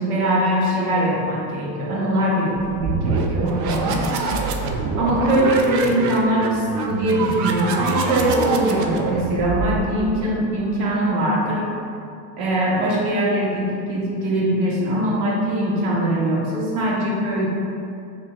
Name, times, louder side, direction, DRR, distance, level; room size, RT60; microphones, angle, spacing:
voice 1, 0.0-4.4 5.0-11.6 12.4-17.5, right 1 dB, 70° right, -5 dB, 1.3 m, -22 dB
sound 1, 2.6-10.2, right 4 dB, 45° right, 0.4 m, -25 dB
5.5 x 2.6 x 2.4 m, 2.5 s
supercardioid pair, 100°, 45 cm